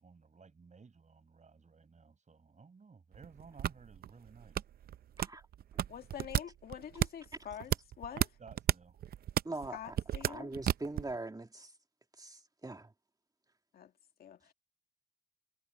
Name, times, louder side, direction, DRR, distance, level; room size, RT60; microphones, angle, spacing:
voice 1, 0.0-4.6 8.4-9.0, right 5 dB, 50° right, 6.4 m, -57 dB
Pote Silicone Mãos, 3.1-11.2, right 11 dB, 80° right, 0.5 m, -34 dB
voice 2, 5.9-8.4 9.7-10.5 13.7-13.9 14.2-14.5, left 9 dB, 85° left, 2.0 m, -46 dB
voice 3, 9.4-10.0 10.3-11.7 12.2-12.9, right 2 dB, 25° right, 2.4 m, -42 dB
cardioid pair, 55°, 15 cm